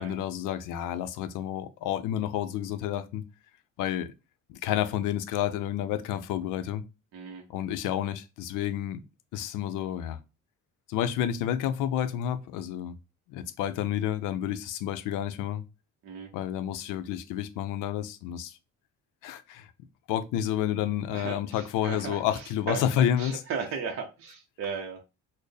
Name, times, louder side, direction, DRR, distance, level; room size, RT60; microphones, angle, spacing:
voice 1, 0.0-3.2 3.8-4.1 4.5-6.8 7.5-9.0 9.3-10.2 10.9-12.9 13.3-15.6 16.3-18.6 19.2-19.7 20.1-23.4, left 10 dB, 75° left, 0.5 m, -30 dB
voice 2, 7.1-7.4 16.0-16.3 21.1-22.8 23.2-25.0, right 5 dB, 45° right, 0.6 m, -36 dB
4.2 x 2.0 x 3.2 m
cardioid pair, 145°, 32 cm